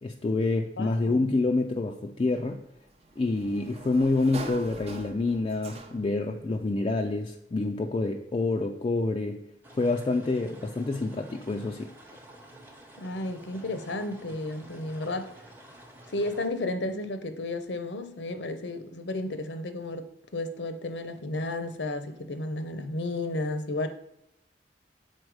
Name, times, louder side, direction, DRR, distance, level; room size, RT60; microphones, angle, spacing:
voice 1, 0.0-2.6 3.2-9.4 9.7-11.9, left 3 dB, 30° left, 2 dB, 0.4 m, -27 dB
voice 2, 0.8-1.2 13.0-15.3 16.1-20.1 20.3-23.9, left 2 dB, 80° left, 9 dB, 0.7 m, -33 dB
Sliding door, 2.3-6.3, right 2 dB, 35° right, 0.6 m, -43 dB
sound 1, 9.6-16.5, right 1 dB, 10° right, 0.9 m, -50 dB
6.4 x 4.3 x 4.7 m, 0.80 s
head